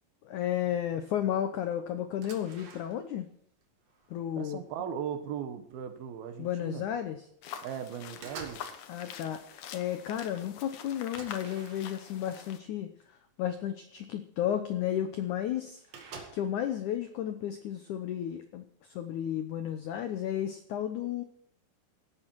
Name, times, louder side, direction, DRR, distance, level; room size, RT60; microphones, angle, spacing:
voice 1, 0.2-3.3 4.1-4.6 6.4-7.2 8.9-9.4 9.7-12.9 13.4-15.8 16.3-21.2, left 10 dB, 85° left, 1.7 m, -33 dB
sound 1, 2.0-3.3 3.6-4.8 5.4-5.6 5.9-6.8 7.2-7.6 7.9-8.8 9.1-9.6 10.0-10.1 10.4-10.5 11.1-12.2 13.0-13.1 13.6-13.7 14.8-14.9 15.1-15.2 15.4-16.7, right 4 dB, 45° right, 2.7 m, -49 dB
voice 2, 4.4-6.8 7.6-8.8, right 8 dB, 70° right, 2.9 m, -38 dB
sound 2, 7.4-12.6, left 8 dB, 65° left, 2.0 m, -45 dB
17.0 x 11.5 x 4.6 m
omnidirectional pair, 4.8 m